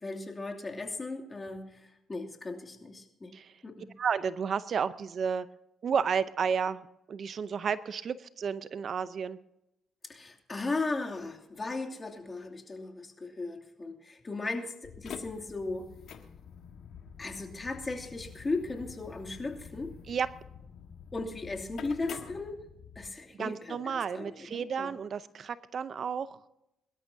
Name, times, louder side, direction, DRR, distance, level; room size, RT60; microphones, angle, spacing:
voice 1, 0.0-3.3 3.6-3.9 10.0-15.9 17.2-19.9 21.1-22.6 23.0-24.9, left 3 dB, 25° left, 1 dB, 2.6 m, -37 dB
voice 2, 4.0-5.5 5.8-9.4 20.1-20.3 23.3-26.4, right 6 dB, 55° right, 14 dB, 0.6 m, -32 dB
sound 1, 14.8-23.1, left 7 dB, 65° left, 1.5 m, -47 dB
23.5 x 12.5 x 2.7 m, 0.87 s
cardioid pair, 90°, 0 cm